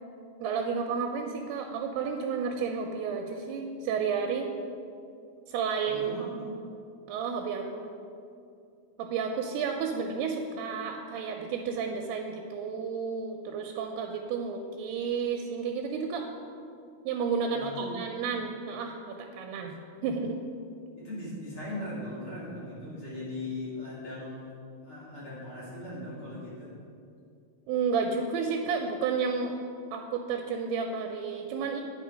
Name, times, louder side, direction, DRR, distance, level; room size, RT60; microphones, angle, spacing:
voice 1, 0.4-4.5 5.5-6.2 7.1-7.9 9.0-16.3 17.1-19.7 20.0-20.4 27.7-29.6 29.9-31.8, right 5 dB, 85° right, 3 dB, 2.5 m, -31 dB
voice 2, 5.8-6.7 17.5-18.0 20.9-26.8, left 1 dB, 40° left, -9 dB, 2.5 m, -39 dB
9.8 x 4.9 x 5.0 m, 2.5 s
omnidirectional pair, 4.7 m